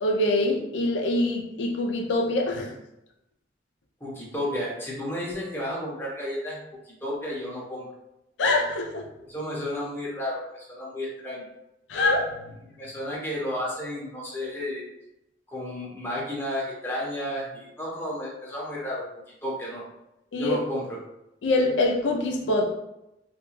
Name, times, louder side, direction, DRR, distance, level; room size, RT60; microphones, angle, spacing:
voice 1, 0.0-2.7 8.4-9.1 11.9-12.6 20.3-20.6 21.4-22.7, left 2 dB, 90° left, 1 dB, 0.4 m, -24 dB
voice 2, 4.0-6.6 6.8-7.9 9.3-11.4 12.8-14.9 15.5-19.0 19.4-19.8 20.4-21.0, left 1 dB, 10° left, -5 dB, 0.7 m, -32 dB
2.4 x 2.2 x 3.0 m, 0.88 s
head